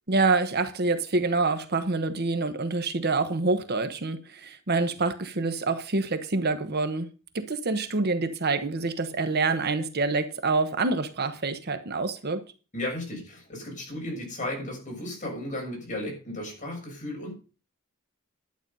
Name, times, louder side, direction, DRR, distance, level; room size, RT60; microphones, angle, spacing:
voice 1, 0.1-7.1 7.3-12.4, right 3 dB, 50° right, 1.1 m, -26 dB
voice 2, 12.7-17.3, left 1 dB, 40° left, 6.8 m, -34 dB
11.5 x 9.0 x 5.4 m
head